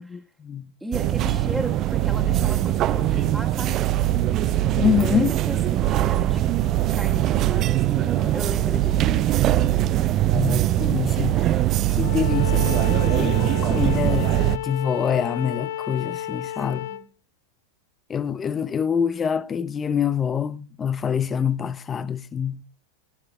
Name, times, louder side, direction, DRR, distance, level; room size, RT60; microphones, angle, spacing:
voice 1, 0.1-0.7 4.8-5.3 10.3-11.5 11.9-16.9 18.1-22.6, left 7 dB, 20° left, 0.7 m, -25 dB
voice 2, 0.8-3.8 4.8-6.4 6.9-9.2 16.7-17.1, right 1 dB, ahead, 1.9 m, -35 dB
sound 1, 0.9-14.6, right 13 dB, 35° right, 0.5 m, -22 dB
Bowed string instrument, 12.0-17.0, left 11 dB, 60° left, 0.7 m, -32 dB
17.0 x 9.8 x 3.5 m
figure-of-eight pair, 90°, 0 cm